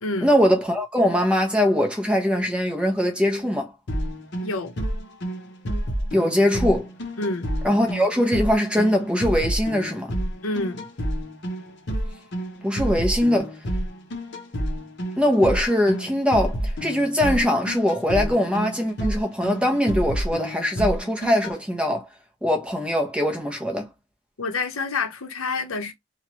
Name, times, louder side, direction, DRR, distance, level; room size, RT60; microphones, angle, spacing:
voice 1, 0.2-3.7 6.1-6.9 7.6-10.1 12.6-13.5 15.2-22.1 22.4-23.9, equal, 5° right, 0.7 m, -22 dB
sound 1, 3.9-21.6, right 1 dB, 55° left, 0.8 m, -29 dB
voice 2, 4.4-4.7 7.2-7.4 10.4-10.9 24.4-25.9, left 3 dB, 85° left, 0.9 m, -27 dB
3.0 x 2.3 x 3.0 m
head